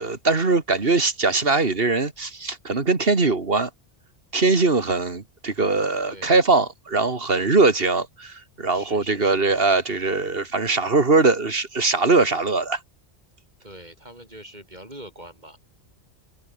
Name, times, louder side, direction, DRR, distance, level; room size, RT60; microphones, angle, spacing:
voice 1, 0.0-3.7 4.3-12.8, right 3 dB, 50° right, 2.4 m, -21 dB
voice 2, 7.2-7.6 8.7-9.4 13.6-15.6, right 1 dB, 35° right, 7.6 m, -43 dB
omnidirectional pair, 1.2 m